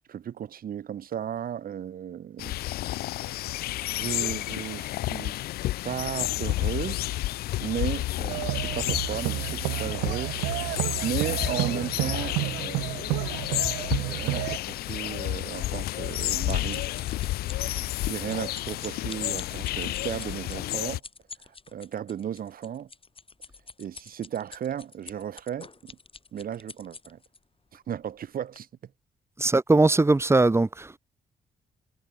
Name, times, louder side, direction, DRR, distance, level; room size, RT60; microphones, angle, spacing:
voice 1, 0.1-2.6 3.9-5.4 5.8-7.2 7.6-10.7 11.0-13.2 13.9-16.9 17.6-21.0 21.7-22.9 23.8-26.0 26.3-27.2 27.7-28.7, right 9 dB, 65° right, 2.8 m, -35 dB
sound 1, 2.4-21.0, left 16 dB, 80° left, 1.1 m, -31 dB
sound 2, 8.3-14.6, right 25 dB, 85° right, 1.7 m, -30 dB
sound 3, 15.7-27.4 28.0-28.2 28.6-28.7, left 4 dB, 35° left, 3.8 m, -46 dB
voice 2, 29.4-31.0, right 2 dB, 15° right, 0.7 m, -20 dB
hypercardioid pair, 45°, 16 cm